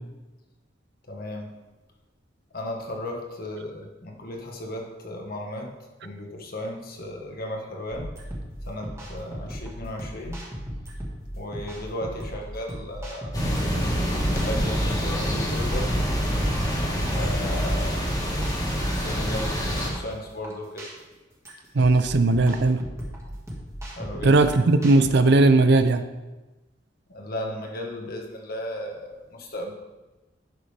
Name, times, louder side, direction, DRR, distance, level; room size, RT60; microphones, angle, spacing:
voice 1, 1.1-1.5 2.5-5.7 6.0-8.1 8.6-10.4 11.3-13.3 14.3-15.9 17.1-18.1 19.0-20.9 24.0-24.4 27.1-29.7, left 1 dB, 55° left, 1 dB, 1.5 m, -35 dB
sound 1, 7.9-25.1, equal, 15° right, 1.8 m, -37 dB
sound 2, 13.3-19.9, equal, 20° left, 1.8 m, -26 dB
voice 2, 21.7-22.8 24.2-26.0, right 2 dB, 60° right, 10 dB, 0.5 m, -18 dB
11.0 x 6.5 x 3.4 m, 1.1 s
head